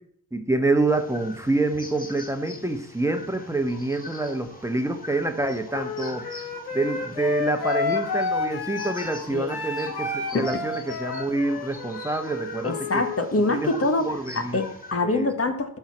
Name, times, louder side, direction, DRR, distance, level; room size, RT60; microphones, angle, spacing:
voice 1, 0.3-6.4 6.7-13.0 13.5-14.6 15.0-15.3, right 2 dB, 10° right, 5 dB, 1.2 m, -27 dB
sound 1, 0.9-14.9, left 2 dB, 20° left, 2.5 m, -43 dB
Wind instrument woodwind instrument, 5.7-13.2, left 3 dB, 80° left, 1.9 m, -30 dB
voice 2, 12.6-15.8, left 2 dB, 40° left, 7 dB, 1.4 m, -25 dB
11.5 x 4.7 x 6.2 m, 0.65 s
cardioid pair, 65°, 37 cm